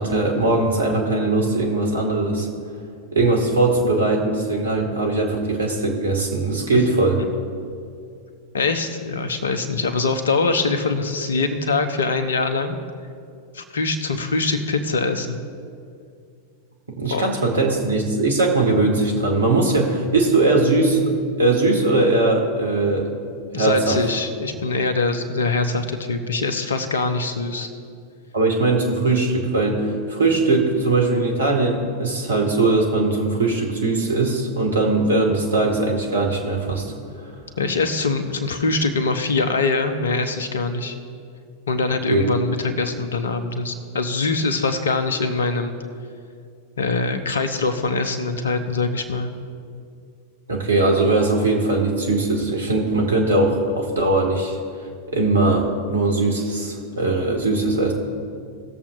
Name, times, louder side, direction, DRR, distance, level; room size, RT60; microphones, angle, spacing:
voice 1, 0.0-2.5 3.1-7.2 16.9-21.1 21.4-23.2 23.6-24.0 28.3-36.9 42.1-42.2 50.5-54.6 55.1-57.9, right 2 dB, 70° right, 1 dB, 1.7 m, -20 dB
voice 2, 8.5-12.8 13.5-15.4 17.1-17.3 23.5-27.7 37.6-40.9 41.7-45.8 46.8-49.3, left 3 dB, 70° left, 9 dB, 0.9 m, -23 dB
19.0 x 7.2 x 2.6 m, 2.3 s
figure-of-eight pair, 90°, 0 cm